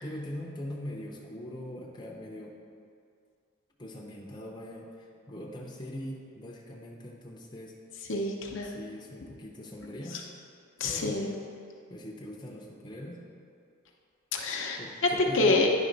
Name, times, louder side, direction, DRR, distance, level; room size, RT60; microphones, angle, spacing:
voice 1, 0.0-2.6 3.8-7.8 8.6-10.2 10.8-11.2 11.9-13.2 14.8-15.7, equal, 20° left, -3 dB, 0.7 m, -41 dB
voice 2, 8.1-8.7 10.1-10.2 10.8-11.4 14.3-15.7, left 2 dB, 55° left, 0 dB, 0.7 m, -27 dB
9.9 x 3.6 x 5.2 m, 2.4 s
head